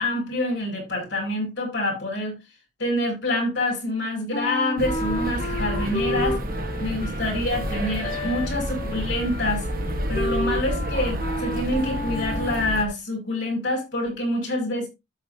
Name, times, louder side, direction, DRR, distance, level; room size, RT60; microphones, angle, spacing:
voice 1, 0.0-2.3 2.8-6.4 6.8-9.6 10.1-14.9, left 1 dB, 70° left, 6.0 m, -26 dB
Wind instrument woodwind instrument, 4.3-12.7, left 1 dB, 30° left, 1.1 m, -32 dB
sound 1, 4.8-12.8, equal, 50° right, 1.3 m, -29 dB
13.0 x 6.9 x 2.7 m
head